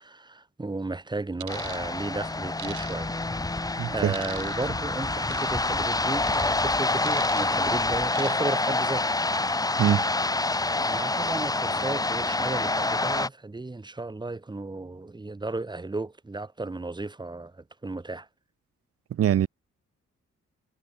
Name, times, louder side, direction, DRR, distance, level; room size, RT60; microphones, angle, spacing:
voice 1, 0.0-3.1 3.6-9.1 10.9-18.3, right 2 dB, 15° right, 1.0 m, -34 dB
sound 1, 1.4-1.8 2.6-3.2 4.1-4.7 5.3-5.6 6.3-6.5 7.1-7.6 8.1-8.5 9.0-9.2, right 9 dB, 75° right, 3.7 m, -40 dB
sound 2, 1.5-13.3, left 2 dB, 10° left, 0.8 m, -27 dB
voice 2, 3.8-4.1 9.8-10.0 19.2-19.5, right 10 dB, 50° right, 0.6 m, -22 dB
cardioid pair, 85°, 30 cm